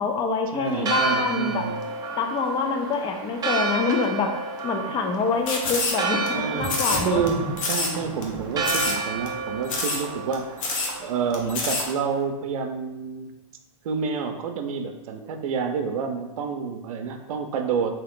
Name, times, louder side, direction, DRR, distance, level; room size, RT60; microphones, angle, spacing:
voice 1, 0.0-1.6 2.2-4.3 4.6-7.2, left 4 dB, 25° left, 4 dB, 0.5 m, -26 dB
voice 2, 0.5-1.8 6.3-6.8 7.0-10.6 11.0-13.3 13.8-17.9, right 6 dB, 80° right, 6 dB, 0.5 m, -28 dB
Church bell, 0.7-12.2, right 4 dB, 20° right, 0.5 m, -31 dB
sound 1, 5.5-6.3 6.6-7.3 7.6-8.0 8.2-8.3 8.6-9.0 9.3-9.4 9.7-10.0 10.3-10.4 10.6-10.9 11.3-11.8, left 3 dB, 70° left, 0.9 m, -26 dB
Thunder, 6.1-10.7 11.4-11.9 12.2-12.3, equal, 55° left, 1.5 m, -37 dB
3.7 x 2.8 x 3.6 m, 1.0 s
hypercardioid pair, 135°, 18 cm